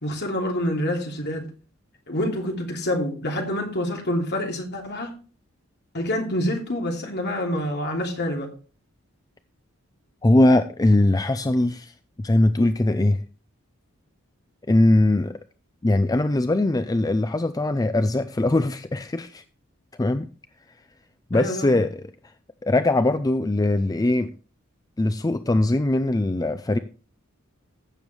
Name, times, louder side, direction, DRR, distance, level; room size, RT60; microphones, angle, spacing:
voice 1, 0.0-1.4 2.1-5.1 5.9-8.5 21.3-21.8, left 1 dB, 55° left, 2.9 m, -27 dB
voice 2, 10.2-11.9 12.2-13.2 14.7-15.3 15.8-19.4 20.0-20.3 21.3-22.1 22.6-24.3 25.0-26.8, left 1 dB, 15° left, 0.4 m, -21 dB
15.5 x 7.1 x 3.3 m
head